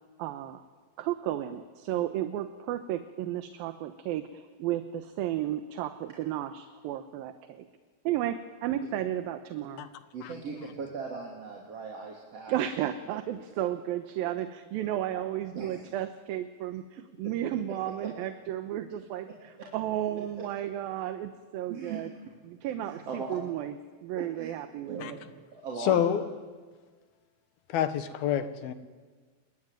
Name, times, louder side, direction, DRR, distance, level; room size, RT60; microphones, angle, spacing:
voice 1, 0.2-0.6 1.0-7.7 8.0-9.9 12.5-22.1 22.5-25.2, right 12 dB, 75° right, 9 dB, 2.7 m, -33 dB
voice 2, 10.1-12.5 13.1-13.4 14.2-14.4 15.1-15.3 15.5-15.8 17.2-17.3 18.0-18.1 19.3-19.4 21.7-22.0 22.8-23.3 24.2-24.5 24.9-25.1 25.5-26.1, right 5 dB, 45° right, -2 dB, 3.8 m, -39 dB
voice 3, 25.8-26.2 27.7-28.7, left 9 dB, 80° left, 10 dB, 3.2 m, -27 dB
29.0 x 22.5 x 9.1 m, 1.5 s
omnidirectional pair, 4.3 m